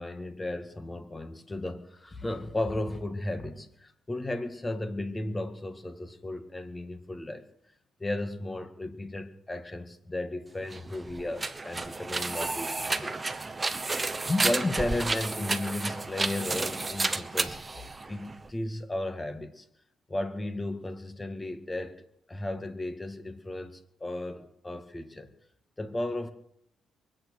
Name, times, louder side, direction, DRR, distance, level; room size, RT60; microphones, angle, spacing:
voice 1, 0.0-7.5 8.0-13.2 13.5-13.6 14.3-17.8 18.1-19.7 20.1-25.3 25.8-26.3, left 1 dB, 20° left, 1.9 m, -34 dB
sound 1, 10.6-18.5, right 3 dB, 20° right, 1.1 m, -32 dB
23.0 x 9.1 x 6.5 m
cardioid pair, 90°, 0 cm